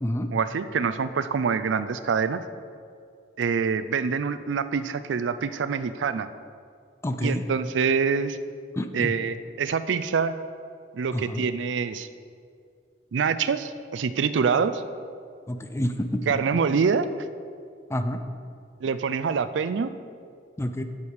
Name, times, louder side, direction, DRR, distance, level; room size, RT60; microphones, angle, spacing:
voice 1, 0.3-2.4 3.4-6.3 7.2-8.4 8.9-10.3 10.9-12.1 13.1-14.8 16.3-17.1 18.8-19.9, right 5 dB, 80° right, 12 dB, 0.4 m, -25 dB
voice 2, 7.0-7.4 8.8-9.1 11.1-11.4 15.5-16.2 17.9-18.2 20.6-20.8, left 1 dB, 15° left, 8 dB, 0.4 m, -28 dB
8.5 x 8.2 x 4.7 m, 2.3 s
head